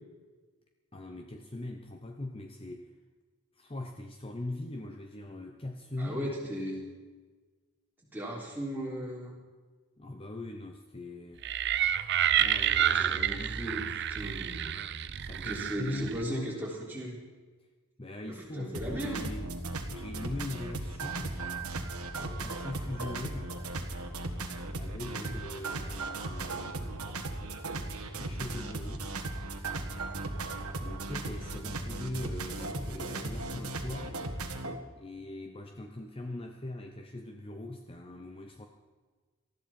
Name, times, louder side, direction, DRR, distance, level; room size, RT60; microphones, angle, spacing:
voice 1, 0.9-2.9 3.6-6.5 10.0-11.5 12.4-13.9 15.2-16.5 18.0-19.6 19.9-21.4 22.1-23.6 24.7-27.1 28.2-29.1 30.8-34.3 35.0-38.7, left 1 dB, 25° left, 4 dB, 0.8 m, -41 dB
voice 2, 6.0-6.8 8.1-9.4 12.7-14.8 15.4-17.2 18.3-19.2 25.1-25.3, equal, 10° right, -4 dB, 3.4 m, -37 dB
sound 1, 11.4-16.2, right 10 dB, 50° right, 0.6 m, -29 dB
sound 2, 18.7-34.8, right 2 dB, 85° right, 1.6 m, -37 dB
19.0 x 13.5 x 4.4 m, 1.4 s
head